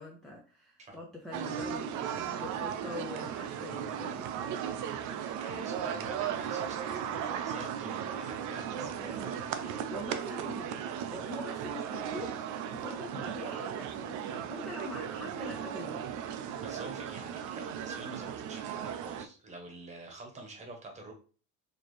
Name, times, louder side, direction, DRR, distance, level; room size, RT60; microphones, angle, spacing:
voice 1, 0.0-4.3 9.9-16.1, left 2 dB, ahead, -2 dB, 0.4 m, -44 dB
sound 1, 1.3-19.3, right 8 dB, 55° right, 0.5 m, -36 dB
voice 2, 3.7-4.3 4.9-9.8 16.6-21.1, right 2 dB, 20° right, 2 dB, 1.0 m, -47 dB
4.3 x 2.8 x 3.2 m, 0.38 s
cardioid pair, 175°, 34 cm